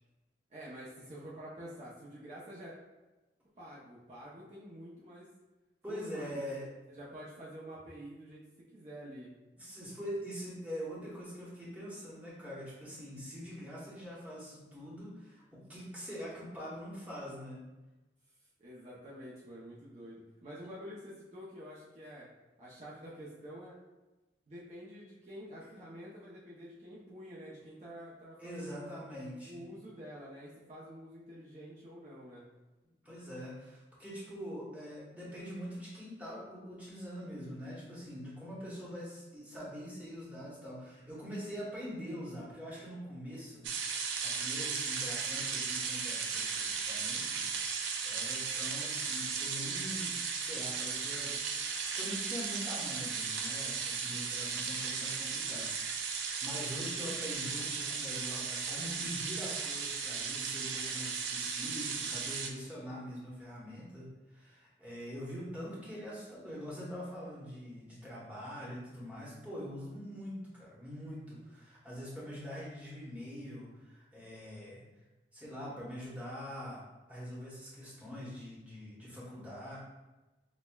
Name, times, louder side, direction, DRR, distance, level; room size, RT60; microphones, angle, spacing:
voice 1, 0.5-2.7 3.6-5.3 5.9-8.4 8.7-9.3 18.6-22.3 22.6-23.7 24.5-28.9 29.4-32.4, equal, 40° right, -7 dB, 0.6 m, -48 dB
voice 2, 5.8-6.7 9.6-17.6 20.6-20.7 28.4-29.6 33.0-43.7 44.2-47.4 47.7-51.3 51.9-74.8 75.3-76.8 77.1-79.8, equal, 10° right, -7 dB, 0.9 m, -44 dB
sound 1, 43.6-62.5, right 5 dB, 90° right, 0.4 m, -36 dB
6.0 x 2.1 x 2.3 m, 1.1 s
head